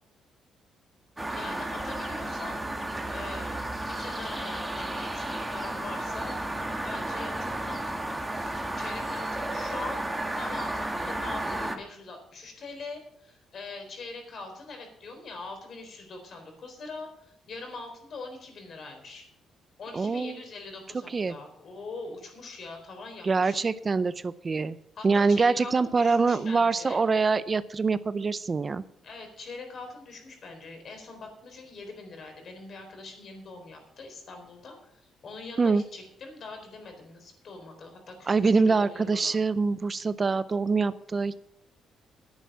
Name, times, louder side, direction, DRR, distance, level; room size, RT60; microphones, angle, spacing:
sound 1, 1.2-11.8, right 1 dB, 10° right, 1.7 m, -33 dB
voice 1, 1.3-2.6 3.1-3.6 3.9-6.4 6.8-19.3 19.8-23.6 25.0-27.0 29.0-39.4, left 3 dB, 55° left, 4 dB, 4.1 m, -43 dB
voice 2, 19.9-20.4 21.1-21.3 23.2-24.8 25.0-28.8 35.6-35.8 38.3-41.4, right 4 dB, 35° right, 15 dB, 0.5 m, -24 dB
10.5 x 8.6 x 7.3 m, 0.76 s
cardioid pair, 90°, 0 cm